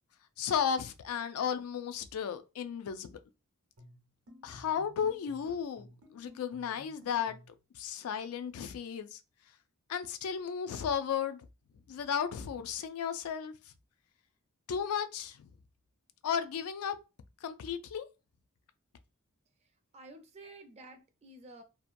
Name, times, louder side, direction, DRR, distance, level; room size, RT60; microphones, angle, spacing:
voice 1, 0.4-3.2 4.4-7.4 7.7-9.2 9.9-11.4 11.9-13.5 14.7-15.5 16.2-16.9 17.4-18.1, left 7 dB, 75° left, 0.3 m, -34 dB
sound 1, 3.8-7.6, left 1 dB, 65° right, 0.7 m, -56 dB
voice 2, 19.9-21.6, right 2 dB, 30° right, 0.4 m, -51 dB
2.7 x 2.1 x 2.5 m
head